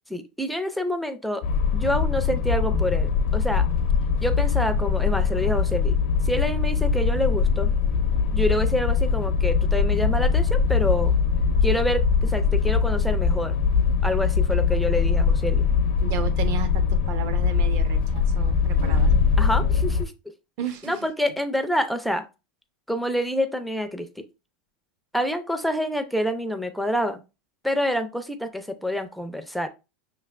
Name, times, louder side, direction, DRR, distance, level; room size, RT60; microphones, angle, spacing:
voice 1, 0.1-1.4 1.7-3.7 4.2-5.9 6.2-7.7 8.3-11.1 11.6-13.6 14.0-15.6 19.4-20.1 20.8-22.3 22.9-24.2 25.1-27.2 27.6-29.7, left 1 dB, ahead, 7 dB, 0.4 m, -27 dB
sound 1, 1.4-20.0, left 5 dB, 70° left, 0.6 m, -22 dB
voice 2, 16.0-19.1 20.6-21.0, right 8 dB, 50° right, 10 dB, 0.7 m, -33 dB
5.5 x 3.2 x 2.3 m, 0.28 s
supercardioid pair, 140°, 6 cm